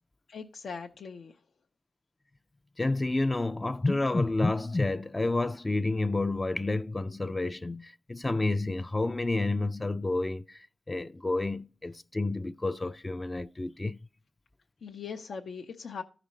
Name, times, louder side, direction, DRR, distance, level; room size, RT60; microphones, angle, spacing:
voice 1, 0.3-1.4 14.8-16.0, left 5 dB, 80° left, 0.6 m, -40 dB
voice 2, 2.8-14.0, left 2 dB, 25° left, 0.3 m, -29 dB
14.0 x 5.0 x 4.2 m
cardioid pair, 60°, 0 cm